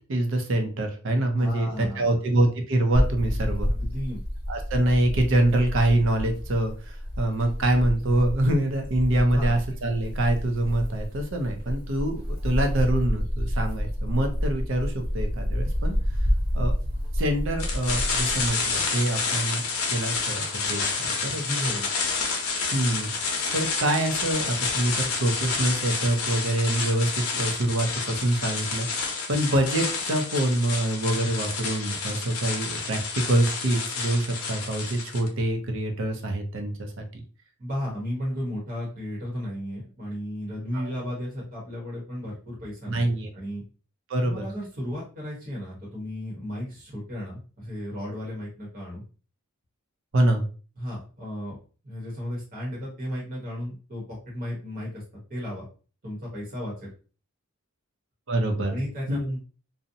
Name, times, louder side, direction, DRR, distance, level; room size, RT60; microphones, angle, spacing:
voice 1, 0.1-3.7 4.5-16.0 16.5-16.7 17.1-19.6 19.9-21.4 22.7-28.9 29.3-37.2 40.7-40.9 42.9-43.3 44.1-44.4 50.1-50.5 58.3-58.8 59.1-59.2, right 1 dB, 60° right, 4 dB, 0.5 m, -25 dB
voice 2, 1.4-2.2 3.7-4.2 9.3-9.5 21.2-21.9 37.6-43.1 43.3-43.6 44.2-49.0 50.8-51.6 51.8-55.0 55.3-55.7 56.0-56.9 58.6-59.4, equal, 40° right, -5 dB, 0.9 m, -34 dB
sound 1, 2.9-18.5, equal, 85° right, 1.2 m, -29 dB
sound 2, 17.6-35.3, left 4 dB, 80° left, 0.6 m, -29 dB
2.6 x 2.0 x 2.7 m, 0.37 s
head